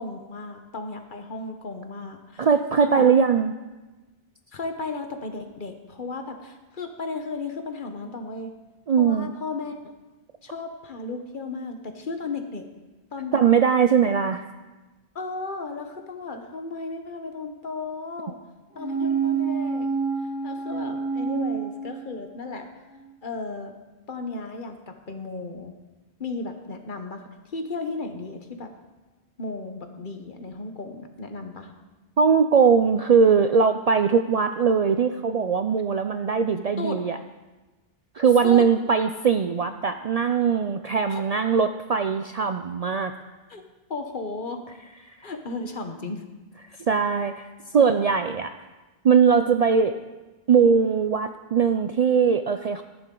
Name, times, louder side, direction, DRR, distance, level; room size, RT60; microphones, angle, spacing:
voice 1, 0.0-2.5 2.8-3.1 4.5-8.5 9.0-9.8 10.4-12.7 13.1-13.4 15.1-18.4 18.7-19.9 20.4-22.7 23.2-23.7 24.1-25.7 26.2-28.7 29.4-31.7 36.8-37.0 38.4-38.7 41.1-41.2 43.5-43.6 43.9-44.6 45.2-46.3, left 3 dB, 55° left, 6 dB, 1.2 m, -34 dB
voice 2, 2.4-3.5 8.9-9.3 13.3-14.4 32.2-37.2 38.1-43.1 46.9-48.5 49.0-50.0 50.5-52.8, right 6 dB, 55° right, 8 dB, 0.4 m, -20 dB
sound 1, 18.7-22.5 22.9-23.0, right 5 dB, 10° right, 1.5 m, -28 dB
14.0 x 11.0 x 3.8 m, 1.2 s
omnidirectional pair, 1.0 m